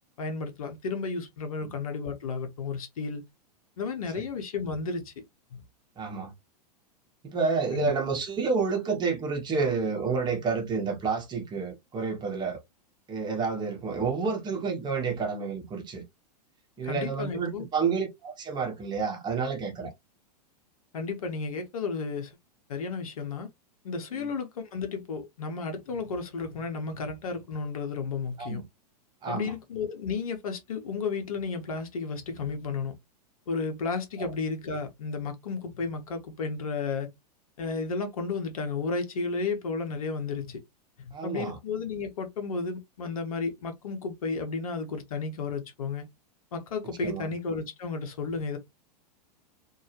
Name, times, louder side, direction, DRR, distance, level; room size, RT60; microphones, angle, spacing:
voice 1, 0.2-3.2 3.8-5.2 5.5-5.6 7.7-7.9 16.8-17.7 20.9-22.3 22.7-23.5 23.8-28.6 29.3-32.9 33.5-37.1 37.6-40.6 41.0-46.1 46.5-48.6, left 4 dB, 60° left, 1.2 m, -33 dB
voice 2, 6.0-6.3 7.2-12.6 13.1-16.0 16.8-19.9 24.1-24.3 28.4-28.6 29.2-29.5 34.2-34.3 41.1-41.6 47.0-47.3, right 5 dB, 20° right, 1.3 m, -29 dB
4.5 x 2.8 x 3.0 m
figure-of-eight pair, 100°, 21 cm